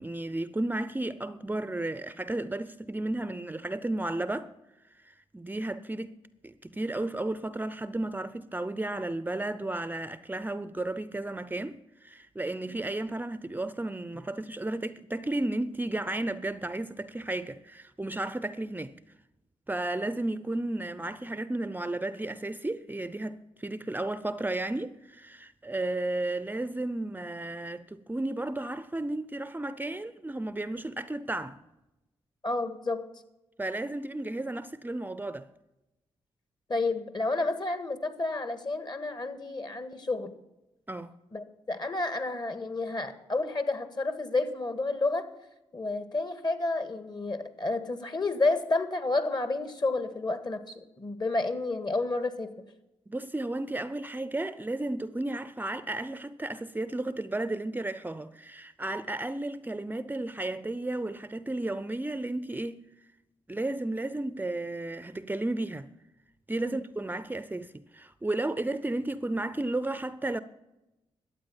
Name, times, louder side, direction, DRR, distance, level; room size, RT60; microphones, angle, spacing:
voice 1, 0.0-4.5 5.0-6.2 6.4-19.0 19.7-31.6 33.6-35.5 40.9-41.1 53.1-62.9 63.5-65.9 66.5-70.4, right 2 dB, 15° right, 0.6 m, -33 dB
voice 2, 32.4-33.0 36.7-40.3 41.3-45.3 45.7-52.5 66.6-66.8, left 2 dB, 40° left, 1.7 m, -30 dB
12.5 x 8.4 x 7.2 m
supercardioid pair, 50°, 11 cm